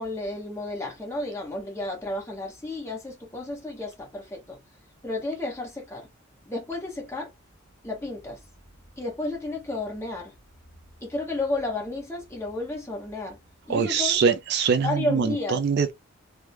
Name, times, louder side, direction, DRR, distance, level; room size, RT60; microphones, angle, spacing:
voice 1, 0.0-4.6 5.0-6.1 6.5-7.3 7.8-8.4 9.0-10.3 11.0-13.4 13.7-14.2 14.8-15.6, left 2 dB, 15° left, 1.0 m, -32 dB
voice 2, 13.7-15.9, right 6 dB, 50° right, 0.3 m, -23 dB
3.4 x 2.1 x 2.8 m
head